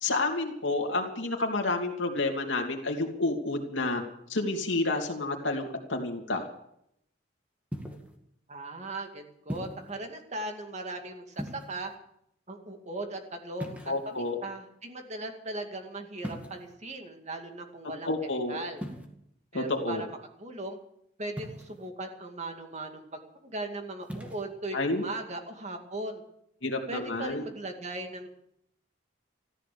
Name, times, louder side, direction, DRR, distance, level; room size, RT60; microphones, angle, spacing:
voice 1, 0.0-4.0 4.3-6.5 13.9-14.4 18.0-18.6 19.5-20.0 24.7-25.0 26.6-27.4, left 2 dB, 75° left, 2 dB, 2.6 m, -29 dB
sound 1, 7.7-8.1 9.5-9.9 11.3-12.0 13.6-14.3 16.2-16.7 18.8-19.1 21.4-21.9 24.0-24.4, equal, 10° right, 2.2 m, -39 dB
voice 2, 8.5-11.9 12.5-18.8 19.5-20.8 21.2-26.2 26.9-28.3, right 2 dB, 40° right, 4 dB, 2.2 m, -38 dB
14.0 x 14.0 x 6.9 m, 0.74 s
head